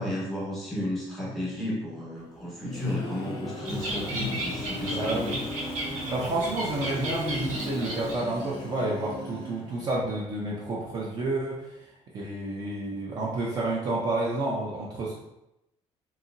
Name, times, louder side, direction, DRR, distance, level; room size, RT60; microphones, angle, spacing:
voice 1, 0.0-5.4, left 1 dB, ahead, -6 dB, 0.9 m, -33 dB
sound 1, 2.4-10.1, left 1 dB, 40° left, 0.5 m, -38 dB
Bird, 3.6-8.4, right 1 dB, 85° right, 1.0 m, -35 dB
voice 2, 4.9-5.3 6.1-11.7 12.1-15.2, right 2 dB, 35° right, -4 dB, 0.4 m, -30 dB
2.8 x 2.7 x 2.5 m, 0.89 s
cardioid pair, 165°, 12 cm